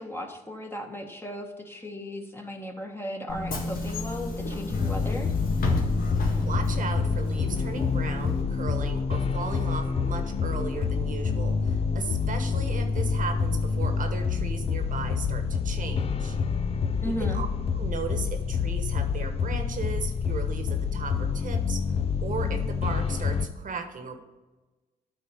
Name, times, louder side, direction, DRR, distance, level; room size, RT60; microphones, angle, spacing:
voice 1, 0.0-5.3 17.0-17.4, equal, 15° left, 3 dB, 1.4 m, -36 dB
Bus / Engine, 3.3-8.4, left 2 dB, 60° left, 1.7 m, -32 dB
sound 1, 4.7-23.5, left 5 dB, 35° left, 0.6 m, -27 dB
voice 2, 6.4-16.4 17.0-17.5 17.7-24.2, right 5 dB, 50° right, 6 dB, 1.2 m, -36 dB
8.9 x 4.0 x 6.5 m, 1.2 s
supercardioid pair, 60°, 17 cm